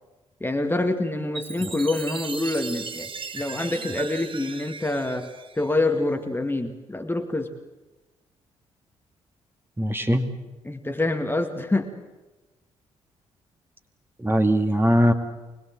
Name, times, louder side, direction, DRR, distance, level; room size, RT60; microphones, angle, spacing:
voice 1, 0.4-5.3 5.6-7.5 10.6-11.9, left 2 dB, 15° left, 6 dB, 2.1 m, -26 dB
Chime, 1.3-6.0, right 5 dB, 35° right, 1.4 m, -37 dB
voice 2, 9.8-10.2 14.2-15.1, equal, 15° right, 5 dB, 2.5 m, -20 dB
25.5 x 20.5 x 7.8 m, 1.1 s
figure-of-eight pair, 40°, 15 cm